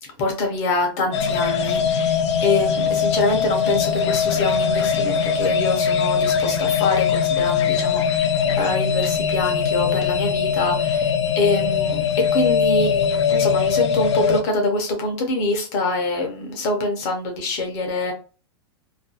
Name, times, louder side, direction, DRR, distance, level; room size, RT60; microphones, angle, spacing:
voice 1, 0.0-12.0 12.3-18.1, left 2 dB, 30° left, 2 dB, 0.6 m, -25 dB
sound 1, 1.1-14.4, left 6 dB, 85° left, 0.5 m, -21 dB
2.4 x 2.2 x 2.6 m, 0.35 s
supercardioid pair, 175°, 15 cm